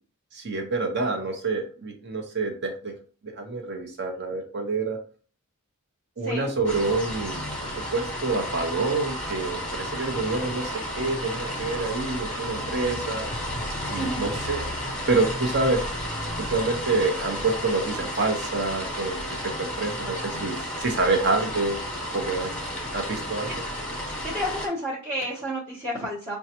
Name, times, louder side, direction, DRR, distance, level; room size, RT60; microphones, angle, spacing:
voice 1, 0.3-2.9 3.2-5.0 6.2-7.4 7.9-13.3 13.9-14.6 15.1-15.8 16.5-21.8 22.1-22.5 22.9-23.5, right 3 dB, 50° right, 2 dB, 1.0 m, -27 dB
sound 1, 6.6-24.7, equal, 5° left, 1.2 m, -32 dB
voice 2, 13.9-14.3 20.0-20.4 23.5-23.6 24.2-26.4, equal, 35° right, -9 dB, 1.1 m, -31 dB
6.4 x 2.3 x 2.9 m, 0.40 s
head